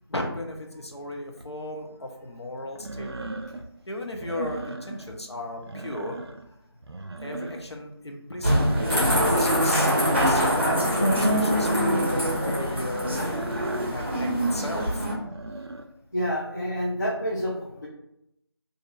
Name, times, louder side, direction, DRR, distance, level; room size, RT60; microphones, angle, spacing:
voice 1, 0.1-3.3 3.9-6.2 7.2-9.0 9.4-10.4 10.7-14.9, left 1 dB, 80° left, 2 dB, 0.8 m, -35 dB
sound 1, 1.4-1.5 2.8-3.7 4.1-5.2 5.5-6.5 6.8-7.8 8.3-10.5 11.2-12.1 12.9-14.0 15.2-15.9, right 2 dB, 70° right, 0.4 m, -36 dB
sound 2, 8.4-15.1, equal, 25° right, 0.6 m, -24 dB
sound 3, 8.9-13.3, left 1 dB, ahead, 1.0 m, -29 dB
voice 2, 16.1-17.5 17.8-17.9, equal, 45° left, -6 dB, 0.6 m, -28 dB
2.6 x 2.5 x 4.1 m, 0.81 s
figure-of-eight pair, 170°, 14 cm